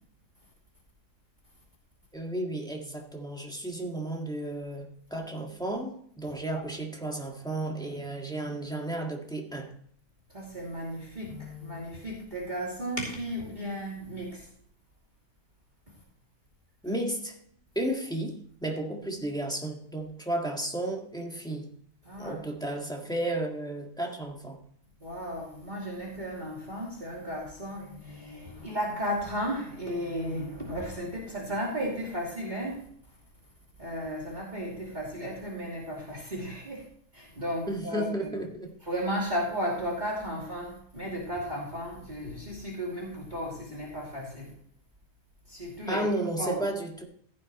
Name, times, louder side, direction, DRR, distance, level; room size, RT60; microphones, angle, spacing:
voice 1, 2.1-9.7 16.8-17.4 17.7-21.7 22.2-24.6 37.7-38.7 45.9-47.0, right 1 dB, 5° left, 0 dB, 1.6 m, -33 dB
voice 2, 10.3-14.5 22.0-22.4 25.0-32.8 33.8-36.8 37.1-38.3 38.8-44.5 45.5-46.0 46.4-46.6, equal, 30° right, -4 dB, 2.8 m, -34 dB
15.0 x 9.3 x 3.1 m, 0.64 s
omnidirectional pair, 1.6 m